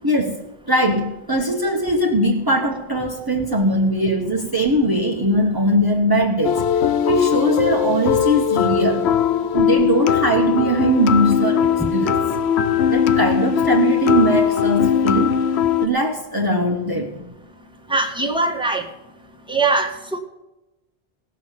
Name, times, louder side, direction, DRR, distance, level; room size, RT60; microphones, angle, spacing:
voice 1, 0.0-9.1 9.5-12.2 12.9-15.3 15.8-17.3, right 1 dB, 20° right, 0 dB, 1.2 m, -20 dB
sound 1, 6.4-15.9, left 8 dB, 85° left, 1.0 m, -19 dB
voice 2, 17.9-18.8 19.5-20.2, right 3 dB, 5° right, 1 dB, 1.6 m, -21 dB
17.5 x 6.3 x 7.4 m, 0.99 s
omnidirectional pair, 1.1 m